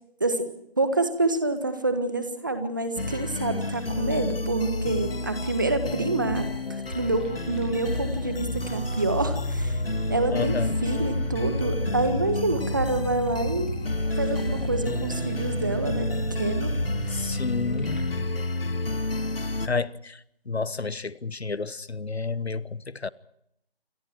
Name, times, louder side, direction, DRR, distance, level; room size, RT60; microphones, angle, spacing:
voice 1, 0.8-9.8 10.1-10.5 10.8-13.7 14.1-16.7, right 2 dB, 20° right, 1.5 m, -27 dB
sound 1, 3.0-19.7, left 2 dB, 65° left, 1.9 m, -30 dB
sound 2, 6.3-6.5 6.9-7.0 7.9-8.1 8.5-8.7 9.6-9.8 10.1-10.2 11.2-11.4 11.8-11.9 12.8-13.0 13.4-13.5 14.4-14.7 15.0-15.2, right 1 dB, 65° right, 7.5 m, -35 dB
sound 3, 6.8-18.1, right 1 dB, ahead, 3.3 m, -34 dB
voice 2, 10.3-10.8 17.1-18.1 19.6-23.1, left 4 dB, 85° left, 1.2 m, -30 dB
29.0 x 24.5 x 4.6 m
figure-of-eight pair, 170°, 31 cm